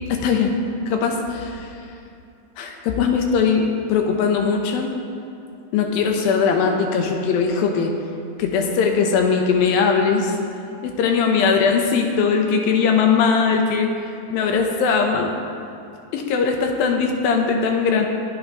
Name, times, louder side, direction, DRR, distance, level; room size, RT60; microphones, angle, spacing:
voice 1, 0.1-1.7 2.6-4.9 5.7-7.9 8.4-10.3 10.8-13.9 14.3-15.3 16.1-18.1, left 5 dB, 75° left, 2 dB, 2.8 m, -20 dB
25.0 x 8.9 x 3.2 m, 2.7 s
omnidirectional pair, 4.3 m